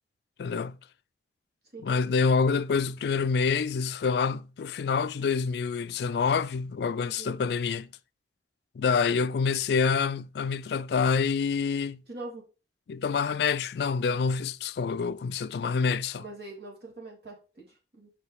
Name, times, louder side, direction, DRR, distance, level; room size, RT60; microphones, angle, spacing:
voice 1, 0.4-0.8 1.8-7.9 8.8-12.0 12.9-16.2, left 5 dB, 70° left, 0.3 m, -27 dB
voice 2, 7.1-7.4 12.1-12.5 16.2-18.1, right 2 dB, 65° right, 2.8 m, -43 dB
5.8 x 5.0 x 4.8 m
head